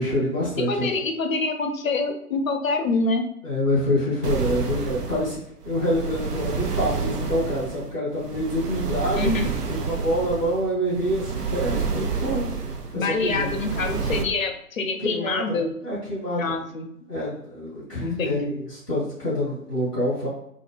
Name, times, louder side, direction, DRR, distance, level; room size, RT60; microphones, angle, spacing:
voice 1, 0.0-0.9 3.4-5.4 5.6-9.3 9.7-12.5 12.9-13.5 15.0-16.5 17.1-20.3, equal, 5° right, -17 dB, 0.5 m, -26 dB
voice 2, 0.7-3.2 9.2-9.5 12.9-15.7 16.4-16.9 18.0-18.5, left 3 dB, 60° left, 5 dB, 0.6 m, -26 dB
sound 1, 4.2-14.2, right 5 dB, 80° right, 0.6 m, -29 dB
2.4 x 2.1 x 3.3 m, 0.76 s
figure-of-eight pair, 130°, 46 cm